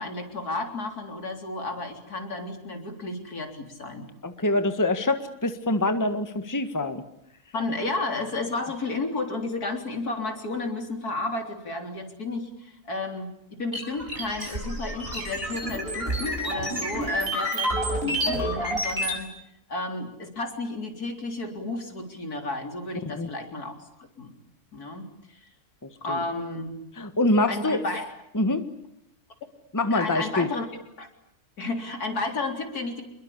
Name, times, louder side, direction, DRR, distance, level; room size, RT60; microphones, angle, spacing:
voice 1, 0.0-4.1 7.5-19.3 19.7-23.8 24.2-24.3 24.7-25.4 26.0-26.8 27.5-28.1 29.9-30.7 31.0-31.1 31.6-33.0, left 2 dB, 80° left, 4 dB, 4.2 m, -32 dB
voice 2, 4.2-7.0 23.1-23.3 26.1-26.2 27.0-27.8 28.3-28.6 29.7-30.5, left 2 dB, 10° left, 8 dB, 1.6 m, -25 dB
sound 1, 13.7-19.2, equal, 40° right, 6.4 m, -29 dB
28.0 x 22.0 x 8.6 m, 0.77 s
omnidirectional pair, 1.6 m